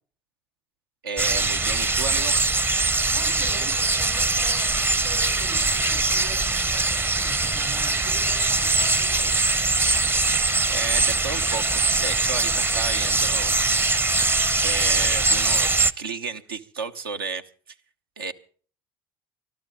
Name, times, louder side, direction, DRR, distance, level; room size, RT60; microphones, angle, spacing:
voice 1, 1.0-2.5 10.7-13.9 14.6-17.5 18.2-18.3, right 5 dB, 85° right, 7 dB, 1.0 m, -32 dB
sound 1, 1.2-15.9, right 3 dB, 20° right, 0.6 m, -22 dB
voice 2, 3.1-9.4, right 5 dB, 65° right, 7 dB, 4.0 m, -42 dB
24.0 x 13.0 x 3.8 m, 0.42 s
hypercardioid pair, 65°, 12 cm